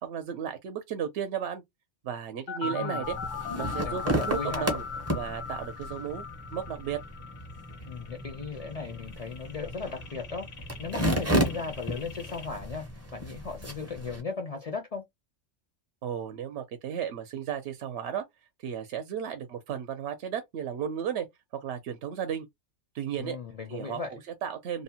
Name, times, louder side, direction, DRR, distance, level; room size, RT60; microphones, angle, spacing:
voice 1, 0.0-1.6 2.0-3.2 3.5-4.8 5.1-6.2 6.5-7.0 16.0-18.2 18.6-21.3 21.5-22.5 22.9-23.4 23.7-24.8, right 8 dB, 70° right, 0.8 m, -34 dB
sound 1, 2.5-12.5, left 6 dB, 90° left, 1.2 m, -39 dB
voice 2, 2.6-3.1 3.8-4.7 7.9-10.5 10.8-12.9 13.1-15.0 23.2-24.1, left 4 dB, 55° left, 0.4 m, -37 dB
sound 2, 3.0-14.2, equal, 20° right, 0.4 m, -33 dB
2.7 x 2.0 x 2.7 m
omnidirectional pair, 1.2 m